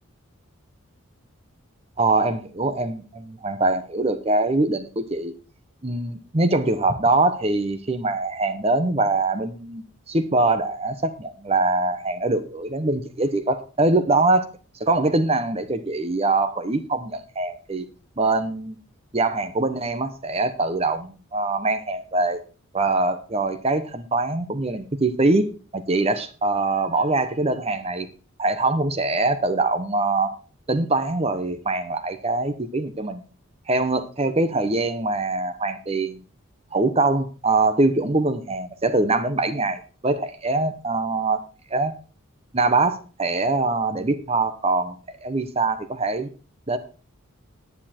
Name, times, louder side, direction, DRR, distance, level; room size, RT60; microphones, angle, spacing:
voice 1, 2.0-5.3 5.8-14.5 14.8-17.9 18.2-18.8 19.1-22.4 22.7-28.1 28.4-30.3 30.7-33.2 33.7-36.2 36.7-41.4 41.7-41.9 42.5-46.3 46.7-46.8, right 2 dB, 30° right, 11 dB, 0.9 m, -23 dB
10.0 x 9.7 x 4.4 m, 0.37 s
head